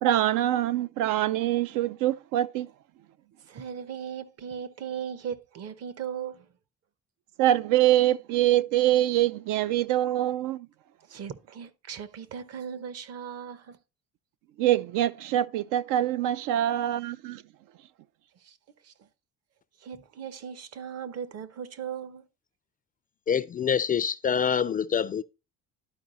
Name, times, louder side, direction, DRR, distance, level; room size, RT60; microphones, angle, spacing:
voice 1, 0.0-2.7 7.4-10.7 14.6-17.4, right 13 dB, 80° right, 0.5 m, -24 dB
voice 2, 3.4-6.5 11.1-13.8 18.4-18.6 18.8-19.1 19.8-22.3, right 8 dB, 50° right, 0.9 m, -38 dB
voice 3, 23.3-25.2, left 7 dB, 30° left, 0.3 m, -26 dB
11.5 x 4.8 x 4.0 m
cardioid pair, 125°, 31 cm